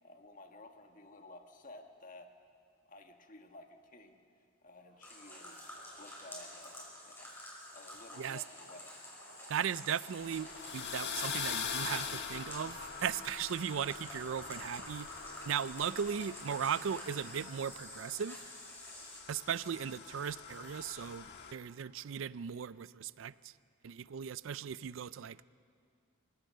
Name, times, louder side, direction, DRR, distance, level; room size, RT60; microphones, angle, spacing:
voice 1, 0.0-2.3 2.9-4.2 4.6-7.3 7.7-9.0, left 2 dB, 40° left, 1.5 m, -54 dB
Cheering, 4.8-19.6, right 2 dB, 50° right, 6.9 m, -63 dB
sound 1, 5.0-19.2, left 1 dB, 10° left, 5.4 m, -50 dB
voice 2, 9.5-15.1 15.5-18.4 19.3-23.5 23.8-25.4, right 8 dB, 70° right, 0.4 m, -37 dB
sound 2, 10.1-21.5, left 6 dB, 60° left, 1.4 m, -43 dB
26.0 x 16.5 x 6.6 m
head